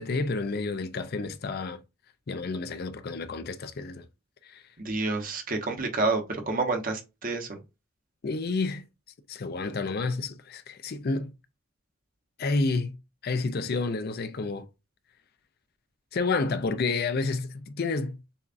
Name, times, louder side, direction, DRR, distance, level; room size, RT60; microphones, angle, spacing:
voice 1, 0.0-1.8 2.3-4.1 4.4-4.6 8.2-8.8 9.3-11.3 12.4-13.0 13.2-14.7 16.1-18.2, left 3 dB, 45° left, 0.4 m, -30 dB
voice 2, 4.8-7.6, right 3 dB, 40° right, 0.9 m, -29 dB
6.9 x 2.4 x 2.5 m
head